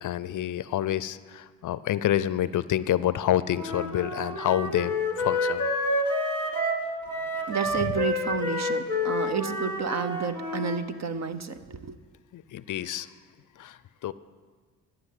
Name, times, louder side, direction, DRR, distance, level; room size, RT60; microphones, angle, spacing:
voice 1, 0.0-5.7 12.3-13.1 13.6-14.1, left 12 dB, 55° left, 16 dB, 0.5 m, -28 dB
Wind instrument woodwind instrument, 3.5-10.8, left 1 dB, 10° right, 2.5 m, -29 dB
voice 2, 7.5-12.0, right 5 dB, 45° right, 10 dB, 0.9 m, -31 dB
11.5 x 7.7 x 8.3 m, 1.5 s
supercardioid pair, 60°, 38 cm